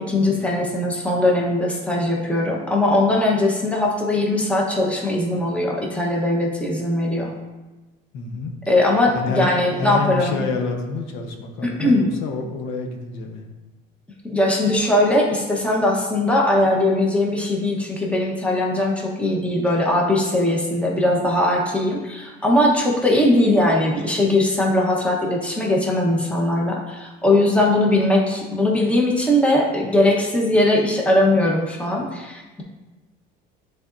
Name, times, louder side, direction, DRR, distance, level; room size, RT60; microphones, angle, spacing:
voice 1, 0.0-7.3 8.7-10.4 11.8-12.1 14.3-32.6, left 1 dB, 5° left, -2 dB, 1.1 m, -20 dB
voice 2, 8.1-8.5 9.1-13.5, left 4 dB, 75° left, 3 dB, 1.0 m, -28 dB
9.8 x 4.1 x 2.6 m, 1.1 s
cardioid pair, 135°, 20 cm